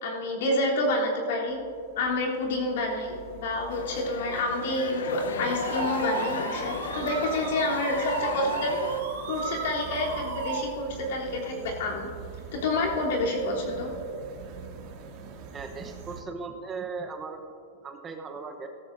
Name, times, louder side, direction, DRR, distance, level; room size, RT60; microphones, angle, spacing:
voice 1, 0.0-1.6 2.0-8.7 9.3-12.1 12.5-13.9, left 2 dB, 65° left, -3 dB, 3.2 m, -28 dB
sound 1, 1.5-16.2, right 6 dB, 45° right, 1.8 m, -42 dB
sound 2, 3.7-9.0, left 6 dB, 90° left, 0.9 m, -35 dB
sound 3, 5.5-10.6, right 6 dB, 70° right, 3.3 m, -35 dB
voice 2, 15.5-17.4 17.8-18.7, right 4 dB, 20° right, 4 dB, 0.9 m, -37 dB
17.0 x 14.0 x 2.6 m, 2.4 s
hypercardioid pair, 140°, 0 cm